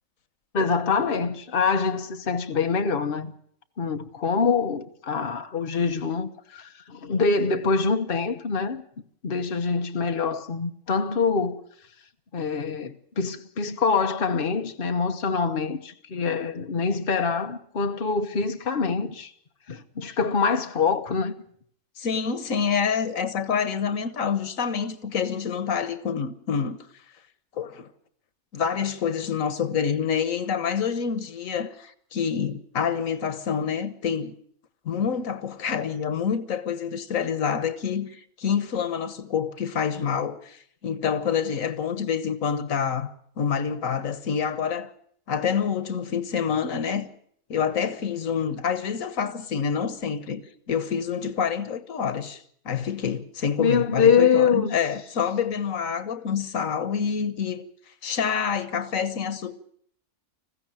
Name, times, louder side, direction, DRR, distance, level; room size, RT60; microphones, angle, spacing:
voice 1, 0.5-3.3 3.8-8.8 9.2-11.6 12.3-19.3 19.7-21.3 53.6-54.8, left 5 dB, 45° left, 1.3 m, -24 dB
voice 2, 22.0-26.8 27.5-27.9 28.5-34.3 34.8-43.1 43.4-44.9 45.3-47.1 47.5-57.6 58.0-59.5, left 7 dB, 90° left, 1.6 m, -27 dB
20.5 x 15.5 x 8.9 m
omnidirectional pair, 1.3 m